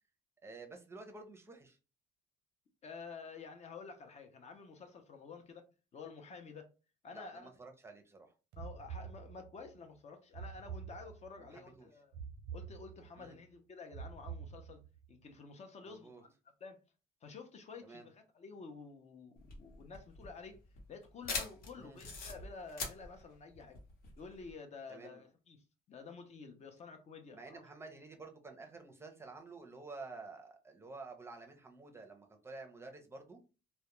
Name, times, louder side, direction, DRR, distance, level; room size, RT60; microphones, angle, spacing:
voice 1, 0.4-1.8 7.1-8.3 11.4-11.9 13.2-13.4 15.8-16.2 17.8-18.1 21.8-22.0 24.9-25.2 27.3-33.4, right 3 dB, 15° right, 0.6 m, -51 dB
voice 2, 2.8-5.6 5.9-6.7 7.0-7.5 8.6-12.1 12.5-14.8 15.1-16.3 16.6-16.8 17.2-20.6 20.9-23.8 24.2-25.6 25.9-27.6, left 4 dB, 40° left, 0.6 m, -50 dB
sound 1, 8.5-9.7 10.3-11.5 12.1-13.3 13.9-15.1, right 7 dB, 85° right, 0.5 m, -47 dB
sound 2, 19.4-24.5, left 4 dB, 60° left, 0.9 m, -43 dB
2.3 x 2.1 x 2.9 m
cardioid pair, 110°, 17 cm